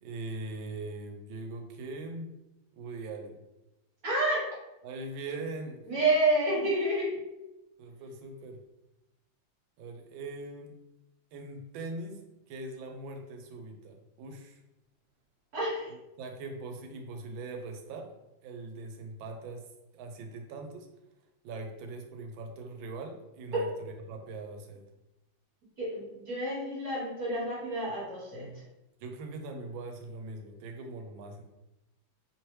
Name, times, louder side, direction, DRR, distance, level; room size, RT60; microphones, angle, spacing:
voice 1, 0.0-2.3 2.7-3.3 4.8-6.0 7.8-8.6 9.8-10.7 11.3-12.2 12.5-14.6 15.9-18.1 18.4-19.6 19.9-20.9 21.4-24.8 29.0-31.4, right 2 dB, 85° right, 4 dB, 1.4 m, -41 dB
voice 2, 4.0-4.5 5.9-7.2 15.5-15.9 25.8-28.5, right 1 dB, 55° right, -6 dB, 1.6 m, -29 dB
3.3 x 3.1 x 3.0 m, 0.95 s
omnidirectional pair, 2.1 m